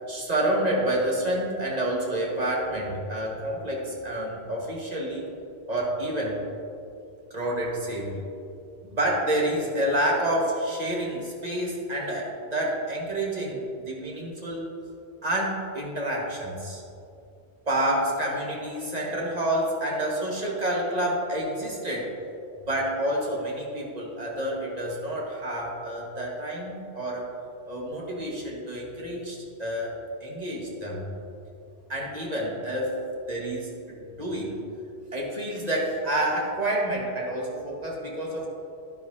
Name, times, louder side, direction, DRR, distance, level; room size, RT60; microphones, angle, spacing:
voice 1, 0.1-5.3 5.7-6.4 7.3-8.2 8.8-14.7 15.2-16.8 17.7-22.1 22.7-27.3 27.7-29.9 30.2-31.1 31.9-33.0 33.3-34.6 35.1-38.5, right 1 dB, 40° right, -3 dB, 1.7 m, -28 dB
11.0 x 10.5 x 2.7 m, 2.6 s
omnidirectional pair, 1.1 m